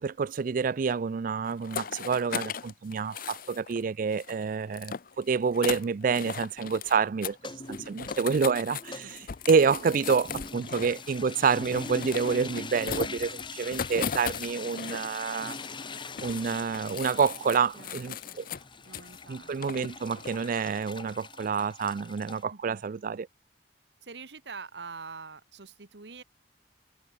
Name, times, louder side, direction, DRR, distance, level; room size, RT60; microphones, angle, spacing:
voice 1, 0.0-7.4 7.7-9.1 9.5-15.6 16.2-18.5 19.3-23.3, right 5 dB, 50° right, 0.4 m, -28 dB
sound 1, 1.5-3.8 4.1-7.0 7.2-7.4 7.7-15.2 15.5-19.2 19.6-20.5, left 7 dB, 55° left, 0.6 m, -38 dB
sound 2, 7.3-22.4, left 3 dB, 25° left, 2.5 m, -43 dB
voice 2, 17.8-18.4 18.9-19.7 22.5-22.8 24.0-26.2, right 4 dB, 70° right, 1.4 m, -45 dB
head